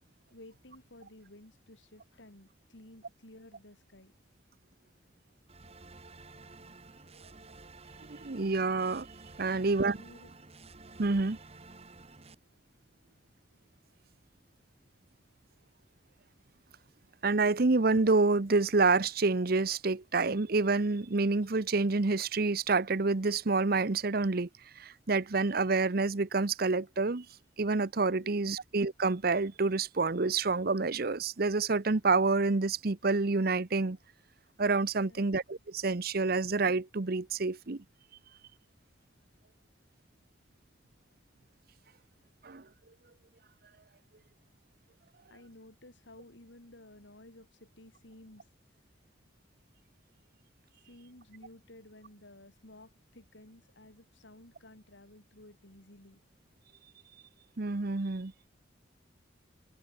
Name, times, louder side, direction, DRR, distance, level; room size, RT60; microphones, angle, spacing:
voice 1, 0.3-4.1 9.5-10.4 28.1-28.3 35.0-35.3 45.3-48.5 50.8-56.2, left 1 dB, 80° left, 3.7 m, -54 dB
sound 1, 5.5-12.3, right 3 dB, 35° right, 1.7 m, -52 dB
voice 2, 8.1-9.1 9.4-10.0 11.0-11.4 17.2-24.5 24.8-27.3 27.6-34.0 34.6-37.8 42.4-42.6 57.6-58.3, right 3 dB, 55° right, 0.9 m, -28 dB
head